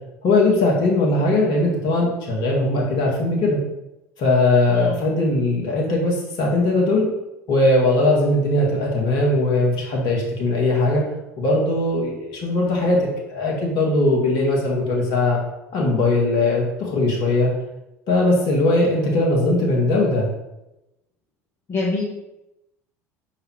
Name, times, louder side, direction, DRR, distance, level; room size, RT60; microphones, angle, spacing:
voice 1, 0.2-3.6 4.2-7.1 7.5-11.0 11.4-15.4 15.7-17.5 18.1-20.3, left 2 dB, 55° left, -1 dB, 2.0 m, -19 dB
voice 2, 21.7-22.0, left 3 dB, 30° left, -5 dB, 1.5 m, -25 dB
5.3 x 3.9 x 4.7 m, 0.92 s
figure-of-eight pair, 65°, 9 cm